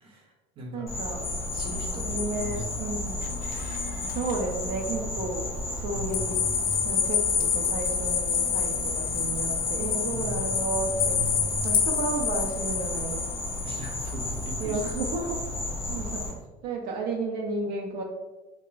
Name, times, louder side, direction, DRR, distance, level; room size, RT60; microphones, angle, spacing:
voice 1, 0.0-0.9 1.5-2.9 5.9-6.8 10.1-10.4 10.8-11.8 13.6-14.8, right 1 dB, 30° right, -1 dB, 0.7 m, -39 dB
voice 2, 0.7-1.2 1.9-3.2 4.1-6.4 6.8-11.2 11.6-13.5 14.6-15.4 15.9-16.3 16.6-18.0, right 3 dB, 70° right, 1 dB, 0.5 m, -32 dB
Insect, 0.9-16.3, left 2 dB, 15° left, 0.6 m, -33 dB
sound 1, 1.2-4.4 4.8-4.9 6.1-15.1, left 7 dB, 60° left, 0.5 m, -29 dB
2.3 x 2.0 x 3.8 m, 1.1 s
cardioid pair, 150°, 17 cm